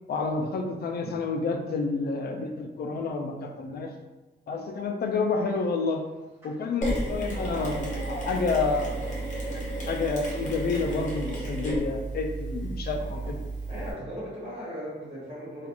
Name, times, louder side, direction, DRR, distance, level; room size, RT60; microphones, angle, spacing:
voice 1, 0.1-3.9 4.5-6.0 6.4-9.1 9.5-13.3, left 4 dB, 55° left, 3 dB, 0.4 m, -29 dB
sound 1, 5.3-11.2, equal, 10° right, 1.0 m, -49 dB
Mechanisms, 6.8-13.9, right 2 dB, 40° left, 0.8 m, -33 dB
voice 2, 7.3-7.8 12.9-13.4 13.7-15.7, equal, 30° right, -8 dB, 0.8 m, -39 dB
2.8 x 2.4 x 2.4 m, 1.1 s
wide cardioid pair, 150°, 19 cm